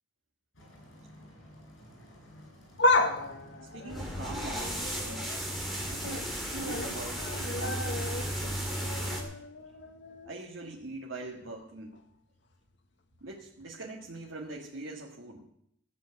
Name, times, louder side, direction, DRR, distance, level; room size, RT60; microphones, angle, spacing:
sound 1, 0.5-7.3, equal, 85° left, 5.8 m, -53 dB
sound 2, 2.6-5.4 5.8-6.3 6.6-10.5 10.8-10.9 11.9-12.0, left 2 dB, 60° left, 1.3 m, -33 dB
voice 1, 3.6-5.4 5.8-9.2 9.7-9.8 10.3-12.0 13.2-15.5, right 2 dB, 80° right, -3 dB, 1.6 m, -43 dB
sound 3, 3.9-9.2, equal, ahead, 2.4 m, -35 dB
14.5 x 7.5 x 8.2 m, 0.73 s
head